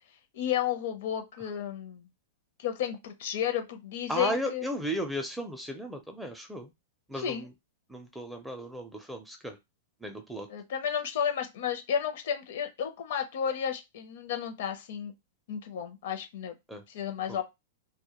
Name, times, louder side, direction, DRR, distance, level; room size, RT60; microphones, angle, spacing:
voice 1, 0.3-2.1 2.6-4.7 7.1-7.5 10.5-15.1 15.5-16.5 16.9-17.4, left 9 dB, 65° left, 7 dB, 0.5 m, -32 dB
voice 2, 4.1-6.7 7.1-7.5 7.9-9.6 10.0-10.5 16.7-16.8 17.3-17.4, equal, 5° right, 5 dB, 0.5 m, -35 dB
2.2 x 2.1 x 2.9 m, 0.21 s
hypercardioid pair, 135°, 0 cm